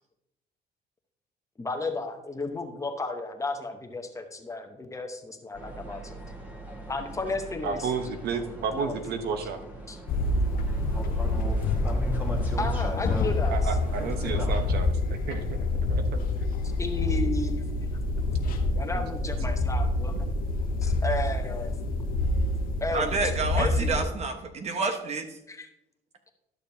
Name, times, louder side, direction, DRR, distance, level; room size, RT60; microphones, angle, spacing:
voice 1, 1.6-6.2 6.9-7.9 8.7-8.9 9.9-10.0 12.6-13.6 16.8-17.7 18.7-20.2 20.8-21.7 22.8-23.3 23.5-24.1 25.5-25.7, left 3 dB, 20° left, 5 dB, 0.9 m, -33 dB
sound 1, 5.5-14.7, equal, 10° right, 1.6 m, -39 dB
voice 2, 7.6-9.6 13.5-16.5 18.6-18.7, right 5 dB, 70° right, 7 dB, 0.9 m, -32 dB
sound 2, 10.1-24.1, left 2 dB, 60° left, 0.9 m, -27 dB
voice 3, 22.9-25.4, right 4 dB, 40° right, 6 dB, 1.1 m, -29 dB
12.0 x 6.6 x 2.7 m, 0.87 s
cardioid pair, 110°, 17 cm